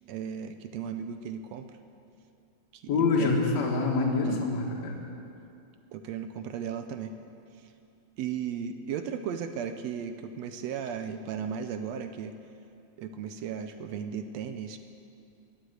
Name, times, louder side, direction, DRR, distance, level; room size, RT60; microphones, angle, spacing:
voice 1, 0.1-1.7 2.7-3.4 4.3-4.4 5.9-7.2 7.6-7.7 8.2-12.3 13.0-14.8, right 7 dB, 75° right, 8 dB, 1.7 m, -36 dB
voice 2, 2.9-5.0, left 3 dB, 65° left, -2 dB, 2.8 m, -26 dB
21.0 x 8.3 x 7.9 m, 2.6 s
omnidirectional pair, 3.5 m